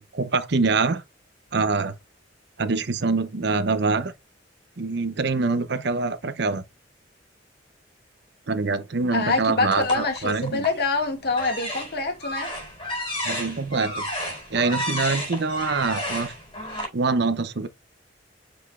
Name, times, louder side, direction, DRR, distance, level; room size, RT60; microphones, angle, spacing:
voice 1, 0.1-1.0 1.5-1.9 2.6-4.1 4.8-6.6 8.5-10.6 13.2-14.0 14.5-16.3 16.9-17.7, right 4 dB, 65° right, 0.8 m, -24 dB
voice 2, 9.1-12.5, left 3 dB, 60° left, 1.9 m, -25 dB
sound 1, 9.7-10.8 11.3-16.8, equal, 30° left, 4.6 m, -32 dB
8.1 x 5.1 x 2.4 m
head